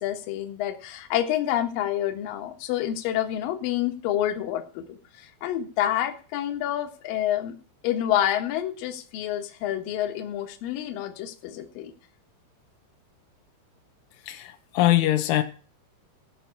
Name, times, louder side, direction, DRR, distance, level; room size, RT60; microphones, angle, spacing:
voice 1, 0.0-7.6 7.8-11.9, left 11 dB, 60° left, 2.7 m, -28 dB
voice 2, 14.8-15.4, left 14 dB, 85° left, 3.5 m, -21 dB
15.5 x 6.1 x 8.5 m
omnidirectional pair, 5.4 m